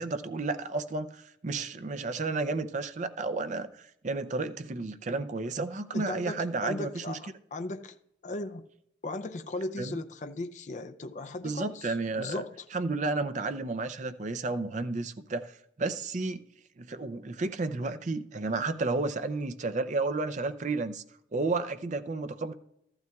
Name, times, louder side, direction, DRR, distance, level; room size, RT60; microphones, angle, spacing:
voice 1, 0.0-7.2 9.8-10.0 11.4-12.4 12.7-16.4 16.8-21.0 21.3-22.5, right 3 dB, 40° right, 0.5 m, -32 dB
voice 2, 5.9-8.0 8.2-8.6 9.0-12.6, left 2 dB, 40° left, 0.4 m, -37 dB
14.0 x 12.0 x 2.3 m
head